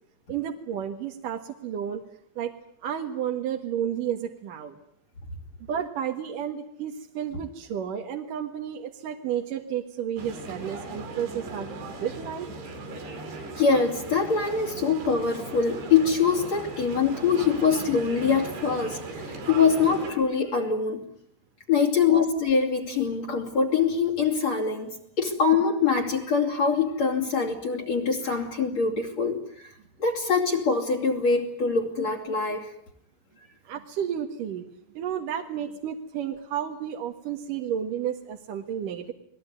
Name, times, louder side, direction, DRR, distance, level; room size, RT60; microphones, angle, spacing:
voice 1, 0.3-2.0 2.4-2.5 2.8-4.7 5.7-11.7 12.0-12.5 33.6-34.6 34.9-39.1, right 9 dB, 60° right, 3 dB, 2.9 m, -31 dB
sound 1, 10.2-20.1, right 3 dB, 75° right, 7.1 m, -38 dB
voice 2, 13.6-21.0 21.7-32.7, left 5 dB, 45° left, 6 dB, 3.9 m, -24 dB
30.0 x 21.0 x 9.6 m, 0.69 s
omnidirectional pair, 4.8 m